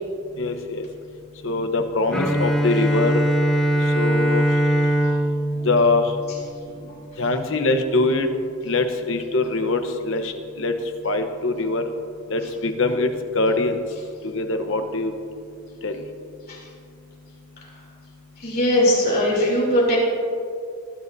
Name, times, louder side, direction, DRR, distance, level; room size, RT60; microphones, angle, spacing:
voice 1, 0.4-0.8 1.4-3.3 4.0-4.4 5.6-6.1 7.2-8.3 8.6-10.7 11.0-11.8 12.3-13.8 14.2-15.1 15.8-16.0, left 2 dB, 55° left, 6 dB, 0.9 m, -23 dB
Bowed string instrument, 2.1-7.0, right 1 dB, ahead, 0.8 m, -22 dB
voice 2, 18.4-20.0, equal, 40° left, -4 dB, 3.2 m, -20 dB
20.0 x 10.5 x 2.7 m, 2.4 s
head